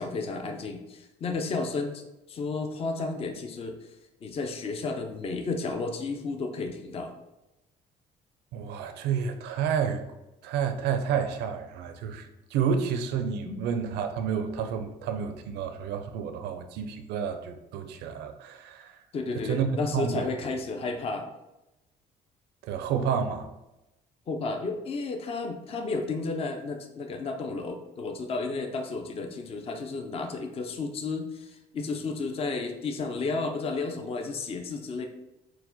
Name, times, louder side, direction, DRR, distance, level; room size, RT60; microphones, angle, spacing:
voice 1, 0.0-3.8 4.2-7.1 13.4-13.6 19.1-21.3 24.3-35.1, left 3 dB, 35° left, 4 dB, 0.5 m, -32 dB
voice 2, 8.5-10.0 10.4-19.0 19.4-20.3 22.6-23.5, right 7 dB, 80° right, 7 dB, 0.4 m, -30 dB
4.6 x 2.1 x 3.9 m, 0.96 s
cardioid pair, 110°, 17 cm